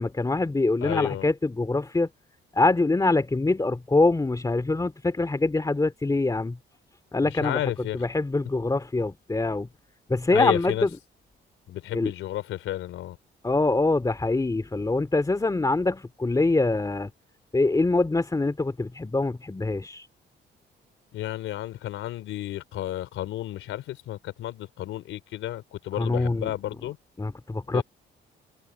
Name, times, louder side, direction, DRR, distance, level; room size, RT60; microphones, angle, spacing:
voice 1, 0.0-2.1 2.5-6.6 7.1-9.7 10.1-10.9 11.9-12.1 13.4-17.1 17.5-20.1 26.0-26.5 27.2-27.8, left 2 dB, 20° left, 2.4 m, -24 dB
voice 2, 0.8-1.3 7.2-8.0 10.3-10.9 11.7-13.2 21.1-27.0 27.7-27.8, left 13 dB, 85° left, 3.6 m, -32 dB
cardioid pair, 90°, 20 cm